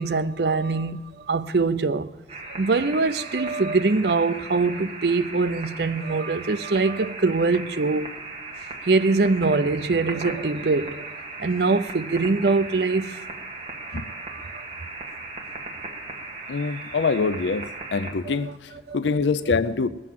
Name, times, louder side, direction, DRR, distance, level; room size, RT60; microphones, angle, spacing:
voice 1, 0.0-2.1 2.5-8.1 8.9-11.1 11.4-13.2 13.9-14.4 18.3-18.4 18.9-19.0, right 3 dB, 60° right, 0.6 m, -23 dB
sound 1, 2.3-18.1, right 3 dB, 30° right, 1.9 m, -37 dB
voice 2, 16.5-19.9, left 4 dB, 75° left, 0.5 m, -25 dB
20.0 x 7.6 x 7.6 m
head